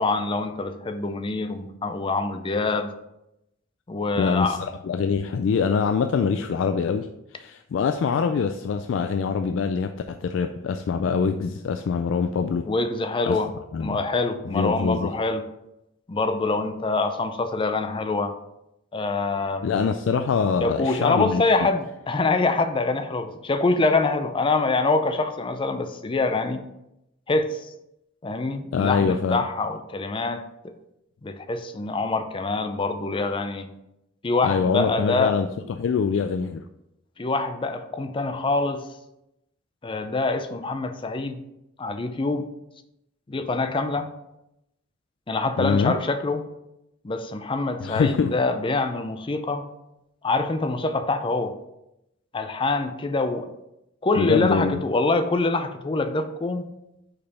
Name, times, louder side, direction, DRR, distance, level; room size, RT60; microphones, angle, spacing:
voice 1, 0.0-2.9 3.9-4.6 12.6-13.5 13.8-15.4 16.1-18.3 18.9-19.8 20.6-26.6 27.3-27.7 28.2-30.4 31.2-33.7 34.2-35.4 37.2-38.9 39.8-41.4 41.8-42.5 43.3-44.1 45.3-46.5 47.0-49.6 50.2-51.5 52.3-53.5 54.0-56.7, left 3 dB, 25° left, 0.5 m, -25 dB
voice 2, 4.1-7.1 7.4-12.7 13.3-13.4 13.7-14.0 14.4-15.1 19.6-21.6 28.7-29.4 34.4-36.6 45.6-45.9 47.8-48.3 54.2-54.8, left 5 dB, 90° left, 0.3 m, -24 dB
5.3 x 4.3 x 4.2 m
head